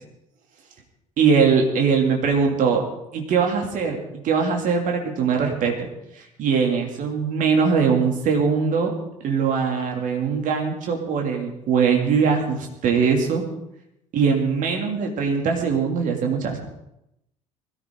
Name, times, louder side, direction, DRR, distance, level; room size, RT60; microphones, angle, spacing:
voice 1, 1.2-2.8 3.1-5.9 6.2-8.9 9.2-13.4 14.1-16.6, right 5 dB, 50° right, 2 dB, 2.8 m, -21 dB
20.0 x 14.0 x 3.9 m, 0.84 s
figure-of-eight pair, 55°, 18 cm